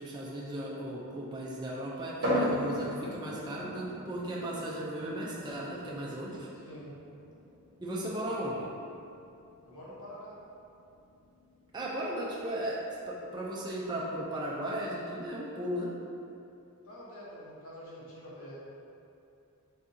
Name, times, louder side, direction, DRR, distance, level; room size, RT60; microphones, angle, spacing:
voice 1, 0.0-6.5 7.8-8.7 11.7-15.9, right 1 dB, 20° right, -6 dB, 0.4 m, -36 dB
sound 1, 2.2-15.7, equal, 45° right, 1.2 m, -39 dB
voice 2, 9.7-10.4 16.8-18.5, equal, 65° left, -7 dB, 1.0 m, -46 dB
4.1 x 3.5 x 2.6 m, 2.7 s
head